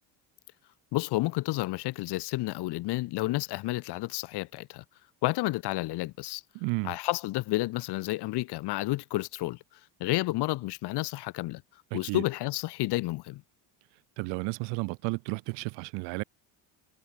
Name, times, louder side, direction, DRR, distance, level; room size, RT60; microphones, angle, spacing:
voice 1, 0.9-4.8 5.2-6.4 6.8-9.6 10.0-11.6 11.9-13.4, left 19 dB, 70° left, 6.5 m, -30 dB
voice 2, 6.5-7.0 11.9-12.2 14.2-16.2, right 33 dB, 90° right, 7.4 m, -32 dB
cardioid pair, 130°, 41 cm